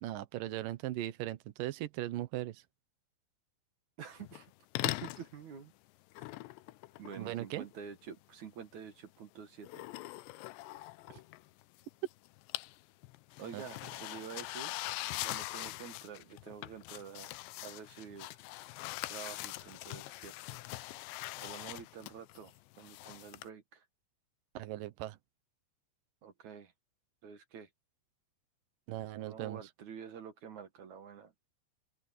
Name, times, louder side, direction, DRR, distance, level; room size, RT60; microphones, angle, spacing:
voice 1, 0.0-2.6 7.2-7.6 11.1-11.2 13.5-13.6 24.5-25.2 28.9-29.6, right 14 dB, 85° right, 1.9 m, -38 dB
voice 2, 4.0-4.5 4.8-5.7 7.0-9.8 13.4-14.8 15.2-17.3 17.6-18.4 19.1-20.4 21.4-23.8 26.2-26.7 27.2-27.7 29.2-31.3, right 7 dB, 55° right, 2.4 m, -48 dB
sound 1, 4.2-4.5 4.8-5.3 6.1-7.8 9.6-11.8 12.1-12.8 13.0-23.5, left 19 dB, 80° left, 2.7 m, -42 dB
open air
omnidirectional pair, 5.5 m